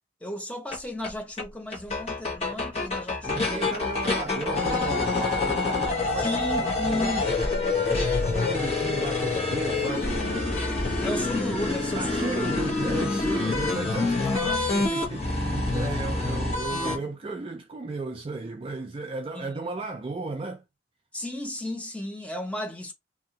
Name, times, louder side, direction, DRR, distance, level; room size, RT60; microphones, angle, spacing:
voice 1, 0.2-3.7 6.1-7.3 11.0-12.4 14.2-14.6 19.3-19.7 21.1-22.9, left 1 dB, 5° left, 0.7 m, -34 dB
sound 1, 0.7-0.8 1.0-1.1 1.4-1.5 1.7-17.0, left 3 dB, 30° left, 1.0 m, -27 dB
voice 2, 3.3-6.3 6.6-7.2 7.5-10.4 11.9-20.6, right 3 dB, 25° right, 0.3 m, -35 dB
2.7 x 2.6 x 2.8 m
head